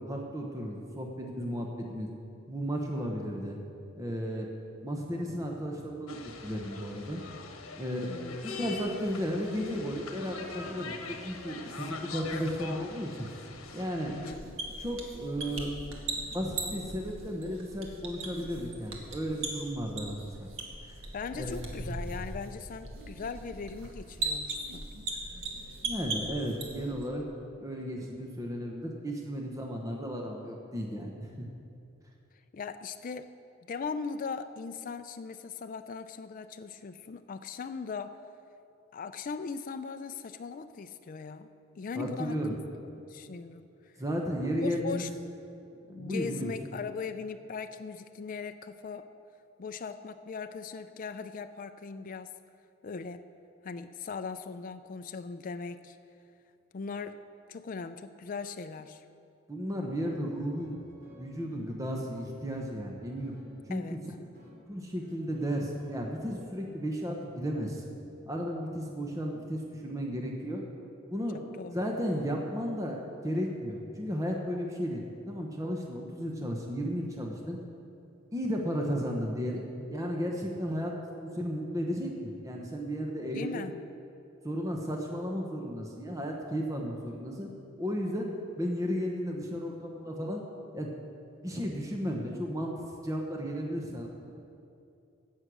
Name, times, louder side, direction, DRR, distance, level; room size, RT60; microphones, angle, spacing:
voice 1, 0.0-2.1 2.5-3.6 4.0-4.5 4.8-6.2 6.4-7.2 7.8-8.1 8.4-13.3 13.7-14.1 14.8-15.7 16.3-20.5 21.4-21.6 25.8-27.2 27.6-31.5 41.9-42.5 44.0-45.0 45.9-46.5 59.5-60.8 61.2-63.3 63.7-64.0 64.7-67.8 68.3-70.6 71.1-71.4 71.7-77.6 78.3-80.9 81.2-83.6 84.4-87.5 87.8-88.3 88.6-90.4 90.7-90.9 91.4-92.7 93.0-94.1, equal, 15° right, 0 dB, 1.0 m, -34 dB
sound 1, 6.1-14.3, left 4 dB, 85° left, 1.2 m, -43 dB
voice 2, 8.1-8.4 14.1-14.4 21.1-24.9 32.5-33.3 33.6-38.2 38.9-41.5 41.8-42.6 43.0-43.9 44.6-45.1 45.9-49.1 49.6-52.3 52.8-53.2 53.6-56.0 56.7-57.2 57.5-59.0 63.7-64.0 71.6-71.8 83.3-83.8, left 5 dB, 40° left, 9 dB, 0.4 m, -39 dB
sound 2, 14.3-27.1, right 2 dB, 70° right, 1.7 m, -39 dB
sound 3, 59.6-66.7, equal, 50° right, 2.7 m, -56 dB
16.5 x 6.5 x 6.2 m, 2.6 s
head